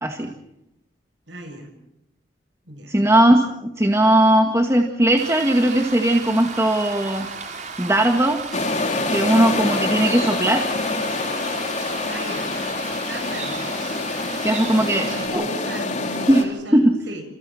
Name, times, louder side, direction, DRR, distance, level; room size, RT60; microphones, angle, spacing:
voice 1, 0.0-0.3 2.9-7.3 7.8-8.4 9.1-10.7 14.4-15.4 16.3-16.9, right 1 dB, 15° right, 3 dB, 2.0 m, -18 dB
voice 2, 1.3-1.7 2.7-3.0 12.0-12.6 13.0-13.7 15.0-17.2, right 1 dB, 75° right, 5 dB, 7.3 m, -35 dB
sound 1, 5.2-15.3, right 4 dB, 40° right, 5.6 m, -35 dB
sound 2, 8.5-16.4, left 3 dB, 40° left, 3.6 m, -26 dB
29.0 x 29.0 x 4.4 m, 0.83 s
head